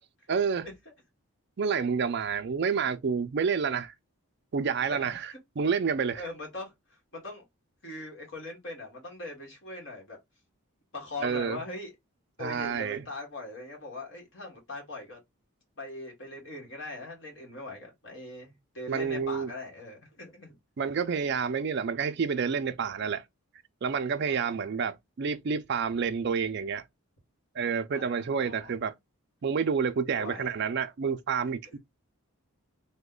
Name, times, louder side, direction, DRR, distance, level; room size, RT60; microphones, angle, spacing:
voice 1, 0.3-0.7 1.6-3.9 4.5-6.3 11.2-11.6 12.4-13.0 18.9-19.5 20.8-23.2 23.8-26.8 27.6-28.9 29.4-31.8, right 6 dB, 50° right, 0.4 m, -29 dB
voice 2, 4.9-5.4 6.1-7.4 7.8-10.2 10.9-11.9 12.4-15.2 15.8-20.6 24.3-24.5 27.9-28.7 30.1-30.5, left 2 dB, 55° left, 1.4 m, -41 dB
3.0 x 2.1 x 3.7 m
head